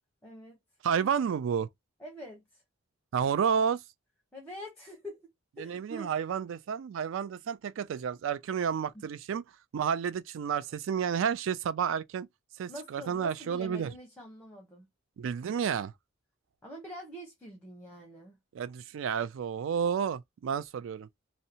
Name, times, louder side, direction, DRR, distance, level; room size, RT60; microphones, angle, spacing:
voice 1, 0.2-0.6 2.0-2.6 4.3-5.3 5.6-6.1 8.9-9.1 12.7-14.8 16.6-18.4, equal, 5° left, 0.7 m, -45 dB
voice 2, 0.8-1.7 3.1-3.8 5.6-9.4 9.7-12.3 12.6-13.9 15.2-15.9 18.5-21.1, right 7 dB, 65° right, 0.3 m, -31 dB
2.7 x 2.0 x 2.7 m
head